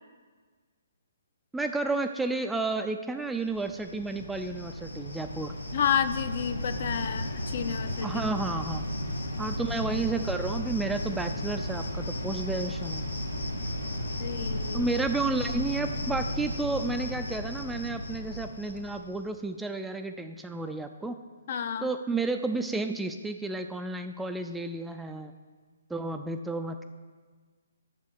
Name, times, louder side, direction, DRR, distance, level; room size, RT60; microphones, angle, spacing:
voice 1, 1.5-5.5 8.0-8.9 9.4-13.0 14.7-21.2 21.8-25.3 25.9-26.8, right 3 dB, 5° right, 6 dB, 0.4 m, -31 dB
Cricket, 3.5-19.2, left 1 dB, 80° left, 1.2 m, -34 dB
voice 2, 5.7-8.1 14.2-14.8 21.5-21.9, left 8 dB, 45° left, 11 dB, 0.5 m, -30 dB
7.4 x 6.7 x 6.7 m, 1.5 s
figure-of-eight pair, 130°, 0 cm